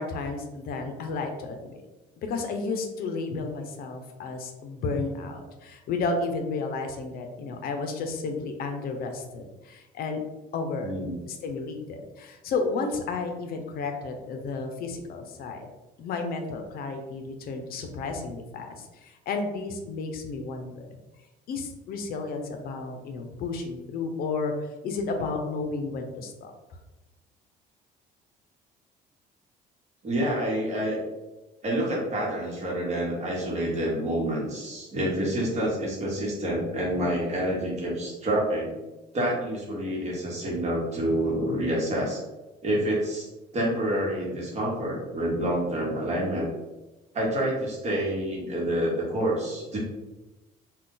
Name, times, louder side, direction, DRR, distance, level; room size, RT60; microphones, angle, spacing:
voice 1, 0.0-1.7 2.2-10.2 10.5-10.9 11.3-15.7 16.0-20.8 21.5-26.5, left 3 dB, 65° left, 4 dB, 0.5 m, -32 dB
voice 2, 10.8-11.2 30.0-31.0 31.6-38.7 39.1-42.2 42.6-46.5 47.1-49.8, right 1 dB, 40° right, -3 dB, 1.1 m, -28 dB
2.4 x 2.2 x 3.7 m, 1.1 s
cardioid pair, 110°, 17 cm